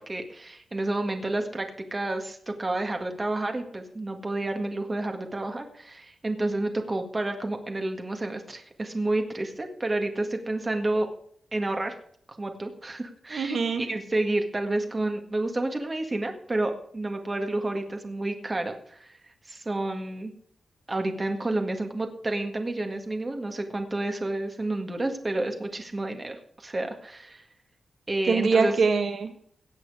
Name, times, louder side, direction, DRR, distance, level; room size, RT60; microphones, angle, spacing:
voice 1, 0.1-11.1 11.5-12.0 12.4-19.1 19.5-20.3 20.9-27.4 28.1-28.8, right 2 dB, 20° right, 5 dB, 1.8 m, -30 dB
voice 2, 13.3-13.8 28.3-29.3, right 4 dB, 60° right, 6 dB, 1.5 m, -23 dB
17.5 x 7.9 x 4.8 m, 0.62 s
wide cardioid pair, 175°, 0 cm